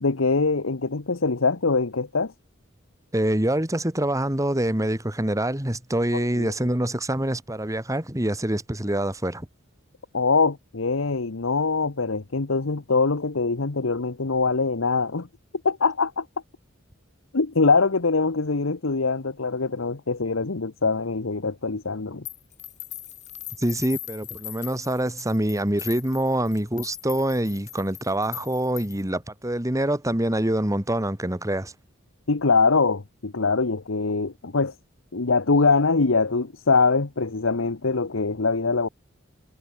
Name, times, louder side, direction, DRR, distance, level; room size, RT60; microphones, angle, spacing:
voice 1, 0.0-2.3 6.1-6.5 10.1-15.3 15.6-16.3 17.3-22.2 32.3-34.7 35.1-38.9, left 4 dB, 90° left, 1.1 m, -23 dB
voice 2, 3.1-9.5 23.6-31.7, right 1 dB, 15° right, 2.3 m, -25 dB
sound 1, 22.3-29.1, left 12 dB, 35° left, 2.3 m, -40 dB
head